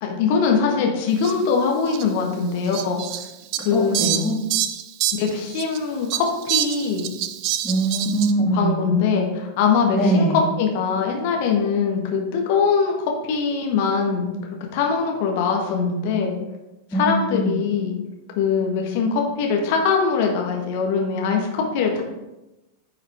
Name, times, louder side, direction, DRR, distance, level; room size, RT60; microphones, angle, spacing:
voice 1, 0.0-3.0 3.6-4.0 5.2-7.1 8.5-10.3 10.6-16.3 16.9-18.0 18.4-22.0, left 5 dB, 50° left, 1 dB, 1.5 m, -22 dB
Fowl, 1.2-1.3 1.9-2.0 2.7-5.8 6.1-8.3, right 12 dB, 40° right, 0.5 m, -26 dB
voice 2, 3.7-4.4 7.6-8.9 9.9-10.4 16.9-17.6, right 1 dB, 10° left, -7 dB, 2.0 m, -22 dB
9.9 x 5.6 x 3.6 m, 0.99 s
figure-of-eight pair, 90°, 0 cm